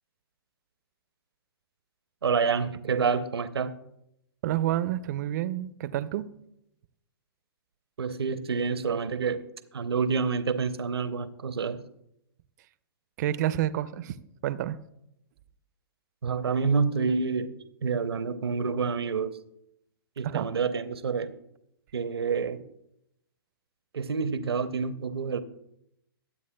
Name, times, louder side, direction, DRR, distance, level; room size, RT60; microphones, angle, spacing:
voice 1, 2.2-3.7 8.0-9.4 9.7-11.8 16.2-17.5 17.8-19.4 20.2-21.3 21.9-22.6 23.9-25.4, right 5 dB, 80° right, 0.7 m, -28 dB
voice 2, 4.4-6.3 13.2-14.2 14.4-14.8 20.2-20.5, right 12 dB, 45° right, 0.6 m, -29 dB
21.5 x 8.2 x 2.2 m
hypercardioid pair, 125°, 13 cm